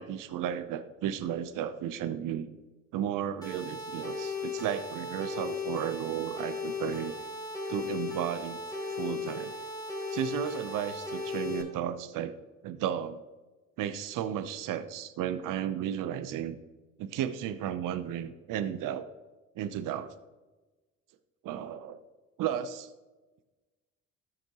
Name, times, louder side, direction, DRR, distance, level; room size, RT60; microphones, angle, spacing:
voice 1, 0.0-2.6 2.9-7.1 7.7-8.6 8.9-9.5 10.1-12.3 12.6-13.2 13.8-16.6 17.0-19.1 19.6-20.1 21.4-22.0 22.4-22.9, right 10 dB, 75° right, 12 dB, 0.7 m, -34 dB
sound 1, 3.4-11.6, left 3 dB, 10° left, 3.3 m, -36 dB
13.0 x 6.5 x 2.9 m, 1.2 s
supercardioid pair, 70°, 33 cm